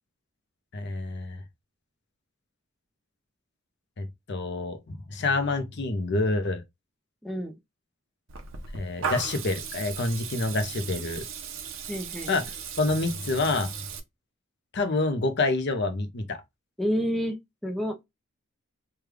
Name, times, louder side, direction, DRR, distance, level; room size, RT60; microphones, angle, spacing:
voice 1, 0.7-1.4 4.0-6.6 8.7-11.2 12.3-12.4 12.8-13.7 14.7-16.4, left 2 dB, 55° left, 0.6 m, -27 dB
voice 2, 7.2-7.5 11.9-12.3 16.8-17.4 17.6-18.1, equal, ahead, 0.4 m, -29 dB
Water tap faucet / Liquid, 8.3-14.0, right 7 dB, 65° right, 0.7 m, -37 dB
3.3 x 2.3 x 3.3 m
head